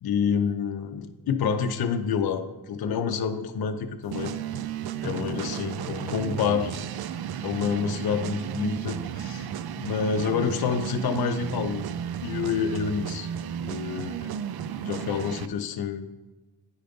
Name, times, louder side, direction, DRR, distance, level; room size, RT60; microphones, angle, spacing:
voice 1, 0.0-4.3 5.0-6.7 7.4-9.5 9.8-11.8 12.2-13.3 13.6-14.3 14.8-16.1, left 6 dB, 65° left, 7 dB, 0.6 m, -28 dB
sound 1, 4.1-15.5, right 9 dB, 70° right, 0.5 m, -33 dB
9.6 x 5.1 x 3.8 m, 1.1 s
wide cardioid pair, 115°, 40 cm